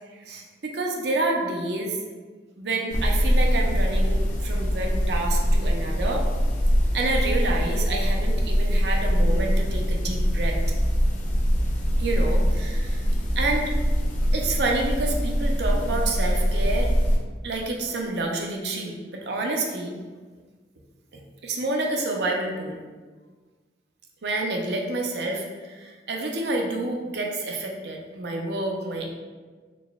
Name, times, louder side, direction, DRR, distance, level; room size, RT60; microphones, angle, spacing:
voice 1, 0.2-2.0 2.6-6.2 6.9-10.6 12.0-13.0 13.4-13.7 14.3-16.9 17.4-20.0 21.1-22.8 24.2-29.1, right 2 dB, 65° right, 0 dB, 0.6 m, -28 dB
sound 1, 2.9-17.2, equal, 45° left, 0.5 m, -23 dB
4.0 x 3.5 x 2.3 m, 1.4 s
head